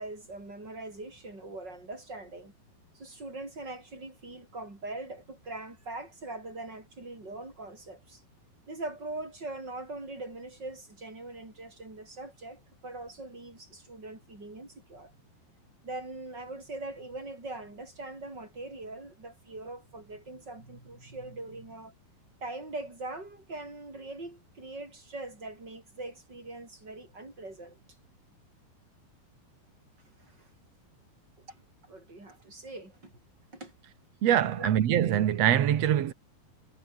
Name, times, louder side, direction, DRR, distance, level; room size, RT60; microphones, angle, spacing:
voice 1, 0.0-2.5 2.9-8.2 8.7-15.1 15.8-21.9 22.4-27.8 30.2-30.5 31.5-33.1 33.5-33.7 34.6-34.7, right 2 dB, 25° right, 8.1 m, -42 dB
voice 2, 34.2-36.1, right 10 dB, 65° right, 1.7 m, -24 dB
omnidirectional pair, 4.8 m